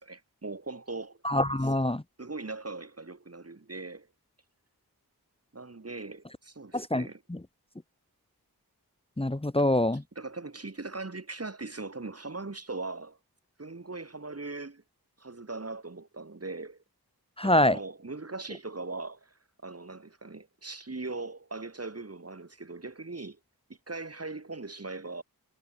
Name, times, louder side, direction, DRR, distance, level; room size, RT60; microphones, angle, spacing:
voice 1, 0.0-1.2 2.2-4.1 5.5-7.2 9.6-9.7 10.1-13.2 13.6-14.8 15.2-16.8 17.4-23.4 23.7-25.2, right 3 dB, 35° right, 4.3 m, -40 dB
voice 2, 1.2-2.0 6.7-7.4 9.2-10.0 17.4-17.8, left 1 dB, 15° left, 1.7 m, -25 dB
cardioid pair, 60°, 39 cm